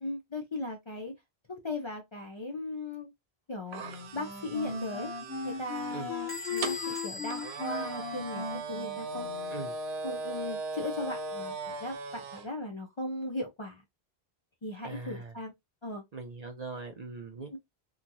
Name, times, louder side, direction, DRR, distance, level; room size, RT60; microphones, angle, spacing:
voice 1, 0.0-1.1 1.5-3.1 3.5-3.8 4.1-5.1 5.4-9.3 10.0-13.8 14.6-15.5 15.8-16.0 17.5-17.6, left 2 dB, 40° left, 0.5 m, -38 dB
sound 1, 3.7-12.5, right 3 dB, 80° right, 0.8 m, -39 dB
Wind instrument woodwind instrument, 3.8-9.7, left 5 dB, 75° left, 1.0 m, -38 dB
Bell / Door, 6.3-8.8, left 2 dB, 10° left, 1.1 m, -42 dB
voice 2, 14.8-15.3 16.1-17.5, right 3 dB, 50° right, 0.5 m, -41 dB
2.9 x 2.3 x 2.6 m
omnidirectional pair, 1.1 m